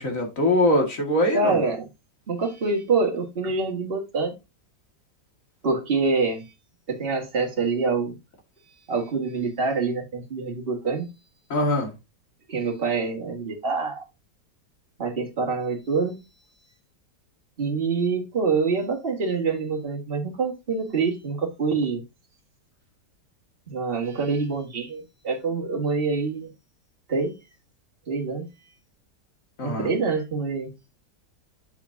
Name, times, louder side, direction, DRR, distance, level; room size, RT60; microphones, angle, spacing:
voice 1, 0.0-1.6 11.5-11.9 29.6-29.9, left 1 dB, 50° left, 2.4 m, -22 dB
voice 2, 1.3-1.8 2.3-4.4 5.6-6.4 6.9-8.2 8.9-11.1 12.5-14.0 15.0-16.3 17.6-22.0 23.7-26.5 27.1-27.3 28.1-28.5 29.6-30.7, right 4 dB, 35° right, 1.9 m, -26 dB
7.3 x 7.2 x 2.7 m
omnidirectional pair, 1.8 m